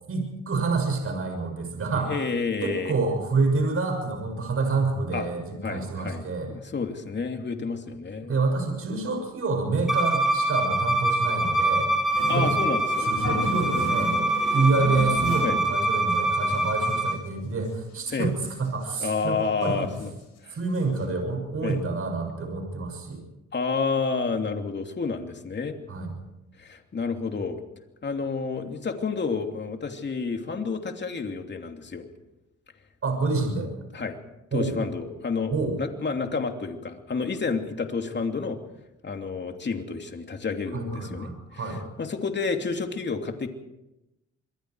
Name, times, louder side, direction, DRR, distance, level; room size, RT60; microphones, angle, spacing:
voice 1, 0.1-2.1 2.6-6.5 8.2-11.9 12.3-12.5 13.0-19.9 20.5-23.2 25.9-26.1 33.0-33.7 34.5-34.8 35.5-35.7 40.7-41.8, right 3 dB, 50° right, 4 dB, 6.8 m, -27 dB
voice 2, 2.0-3.0 5.1-5.3 5.6-8.4 12.3-13.1 15.4-15.6 18.1-18.3 19.0-20.1 20.4-20.6 21.6-21.8 23.5-25.8 26.6-27.6 28.0-32.1 33.9-34.2 34.5-35.5 35.8-38.6 39.0-41.3 42.0-43.5, left 4 dB, 35° left, 4 dB, 2.9 m, -30 dB
Bowed string instrument, 9.9-17.2, right 2 dB, ahead, 4.0 m, -25 dB
sound 1, 12.1-15.7 16.1-16.2 16.4-17.2 17.6-17.7 18.0-18.7 19.2-19.3 19.6-20.3 20.7-20.8 21.0-21.1, left 3 dB, 60° left, 6.9 m, -35 dB
27.0 x 22.0 x 4.8 m, 0.94 s
cardioid pair, 90°, 30 cm